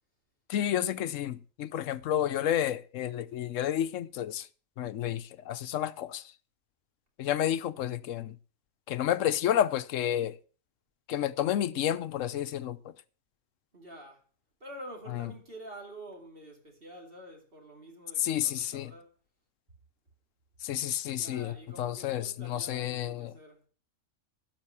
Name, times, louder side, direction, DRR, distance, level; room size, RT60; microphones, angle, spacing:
voice 1, 0.5-4.5 4.8-6.2 7.2-8.3 8.9-10.4 11.1-12.8 18.2-18.9 20.6-23.3, left 10 dB, 75° left, 1.0 m, -30 dB
voice 2, 13.7-14.2 14.6-19.1 21.1-23.6, right 1 dB, 45° right, 3.0 m, -48 dB
12.0 x 5.8 x 6.8 m
omnidirectional pair, 1.4 m